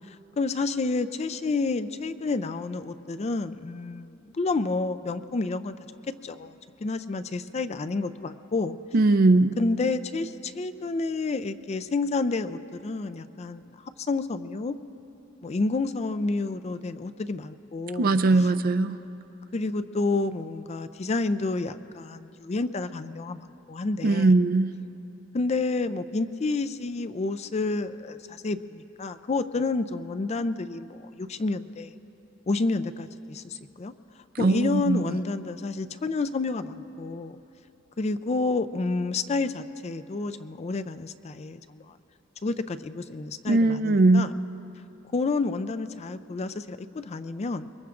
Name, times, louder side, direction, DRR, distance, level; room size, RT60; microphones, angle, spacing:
voice 1, 0.1-5.8 6.2-6.5 6.8-8.8 9.6-13.6 14.1-14.7 15.4-18.1 19.5-24.3 25.3-31.9 32.5-33.9 34.4-37.4 38.0-41.9 42.4-44.3 45.1-47.7, left 3 dB, 35° left, 12 dB, 0.4 m, -29 dB
voice 2, 8.9-9.5 18.0-19.0 24.0-24.8 34.4-35.2 43.5-44.3, right 2 dB, 50° right, 10 dB, 0.4 m, -20 dB
24.5 x 22.0 x 2.5 m, 3.0 s
head